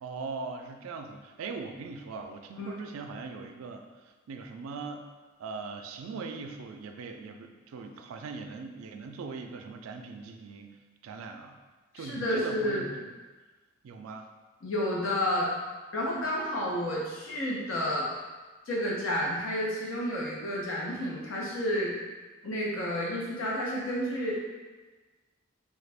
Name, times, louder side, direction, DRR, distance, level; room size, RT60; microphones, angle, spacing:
voice 1, 0.0-3.8 4.3-5.1 5.4-10.8 11.0-11.6 11.9-13.1 13.8-14.3, right 4 dB, 85° right, 5 dB, 0.3 m, -40 dB
voice 2, 11.9-12.8 14.6-15.5 15.9-18.1 18.7-21.9 22.4-24.3, equal, 75° left, -5 dB, 0.9 m, -30 dB
3.2 x 2.4 x 3.3 m, 1.3 s
head